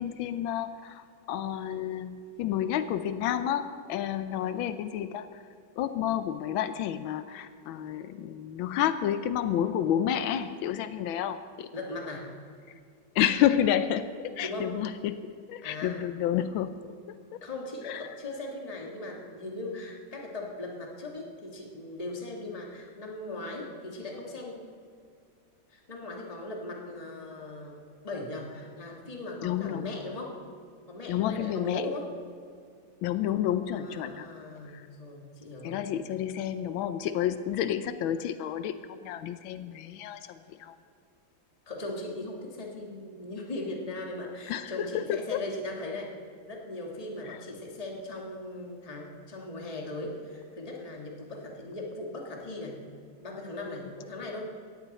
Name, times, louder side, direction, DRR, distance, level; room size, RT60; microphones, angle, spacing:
voice 1, 0.0-5.3 5.8-11.7 13.1-16.8 17.9-18.0 29.4-29.9 31.1-31.9 33.0-34.3 34.7-34.8 35.6-40.2 40.6-40.8 44.5-45.4 47.3-47.4, left 10 dB, 90° left, 11 dB, 1.4 m, -30 dB
voice 2, 11.7-12.3 14.4-14.7 15.6-16.0 17.4-24.6 25.7-30.4 30.9-32.1 33.7-35.8 41.7-46.1 46.5-52.8 53.2-54.4, left 2 dB, 20° left, 0 dB, 1.9 m, -38 dB
18.0 x 14.5 x 4.2 m, 2.2 s
omnidirectional pair, 2.1 m